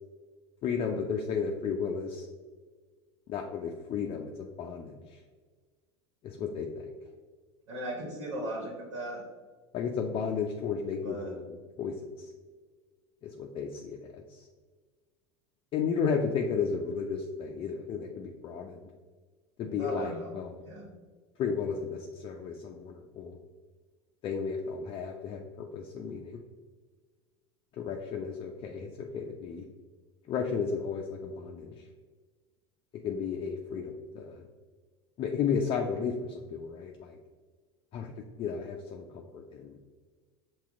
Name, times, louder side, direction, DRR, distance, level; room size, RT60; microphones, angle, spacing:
voice 1, 0.6-2.3 3.3-5.2 6.2-6.9 9.7-12.3 13.2-14.5 15.7-18.9 19.6-20.6 21.4-23.4 24.2-26.4 27.7-29.7 30.3-31.9 33.0-34.5 35.2-37.2 37.9-38.1 38.4-39.8, left 6 dB, 40° left, 2 dB, 0.5 m, -33 dB
voice 2, 7.7-9.2 11.0-11.3 19.8-20.3 20.6-20.9, right 1 dB, 75° right, -2 dB, 1.2 m, -37 dB
5.8 x 2.3 x 3.6 m, 1.4 s
hypercardioid pair, 85°, 15 cm